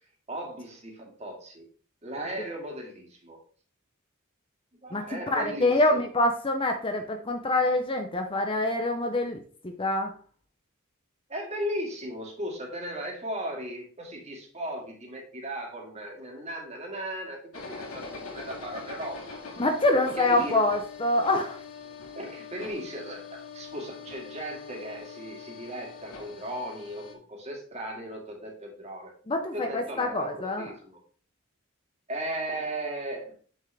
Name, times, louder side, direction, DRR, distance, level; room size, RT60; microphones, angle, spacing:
voice 1, 0.3-1.7 2.0-3.4 4.8-6.1 11.3-19.5 19.9-20.7 22.2-29.1 29.5-31.0 32.1-33.3, right 1 dB, 30° right, 0 dB, 2.2 m, -37 dB
voice 2, 4.9-9.4 9.8-10.1 19.6-21.6 29.3-30.7, left 2 dB, 25° left, 5 dB, 0.7 m, -25 dB
sound 1, 17.5-27.1, left 5 dB, 90° left, 2.0 m, -43 dB
7.2 x 6.5 x 3.4 m, 0.43 s
head